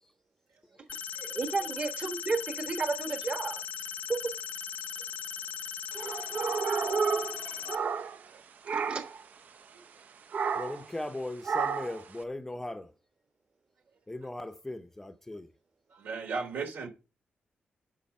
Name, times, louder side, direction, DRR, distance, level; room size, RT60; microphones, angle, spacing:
sound 1, 0.9-7.8, left 8 dB, 60° left, 0.7 m, -38 dB
voice 1, 1.2-3.8 4.1-4.2 8.7-9.0, right 4 dB, 35° right, 1.3 m, -32 dB
sound 2, 5.9-8.4 8.7-9.2 10.3-10.9 11.4-12.0, right 5 dB, 55° right, 0.6 m, -31 dB
voice 2, 10.6-12.9 14.1-15.5, left 1 dB, 10° left, 0.6 m, -38 dB
voice 3, 15.9-16.9, right 4 dB, 85° right, 3.4 m, -35 dB
11.5 x 5.0 x 5.4 m
wide cardioid pair, 170°, 3 cm